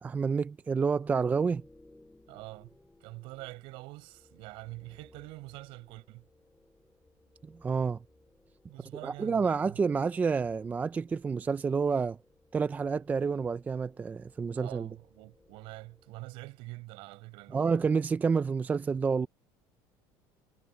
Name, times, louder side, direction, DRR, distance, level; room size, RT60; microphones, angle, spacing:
voice 1, 0.0-1.6 7.6-8.0 9.0-12.2 12.5-14.9 17.5-19.3, right 5 dB, 15° right, 0.4 m, -29 dB
sound 1, 0.9-16.7, left 2 dB, 5° left, 4.1 m, -62 dB
voice 2, 2.3-6.3 8.7-9.8 14.5-17.9, right 23 dB, 65° right, 6.0 m, -46 dB
cardioid pair, 145°, 10 cm